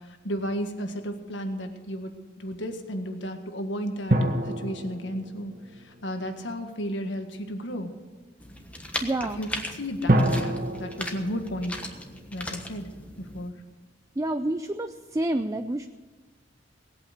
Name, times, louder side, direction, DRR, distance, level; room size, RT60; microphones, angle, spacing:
voice 1, 0.2-4.2 4.4-5.5 5.8-7.9 9.4-11.8 12.3-12.9 13.2-13.5, equal, 75° left, 6 dB, 1.7 m, -33 dB
sound 1, 4.1-6.7 10.1-12.7 13.0-13.1, right 1 dB, 50° right, 1.5 m, -28 dB
sound 2, 8.4-13.5, left 1 dB, 10° left, 1.3 m, -38 dB
voice 2, 9.0-9.4 14.2-15.9, right 1 dB, 15° right, 8 dB, 0.5 m, -28 dB
19.0 x 8.7 x 6.7 m, 1.3 s
head